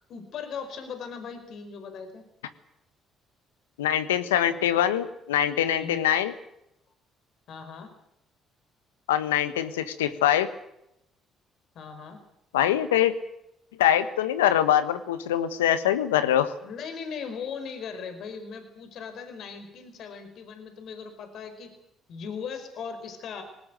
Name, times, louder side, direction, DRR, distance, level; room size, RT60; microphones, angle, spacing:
voice 1, 0.1-2.2 5.7-6.0 7.5-7.9 11.7-12.2 16.6-21.7 22.1-23.4, left 6 dB, 60° left, 7 dB, 4.8 m, -38 dB
voice 2, 3.8-6.3 9.1-10.5 12.5-13.1 13.8-16.5, left 11 dB, 90° left, 12 dB, 1.3 m, -23 dB
20.0 x 19.0 x 9.1 m, 0.81 s
hypercardioid pair, 55°, 0 cm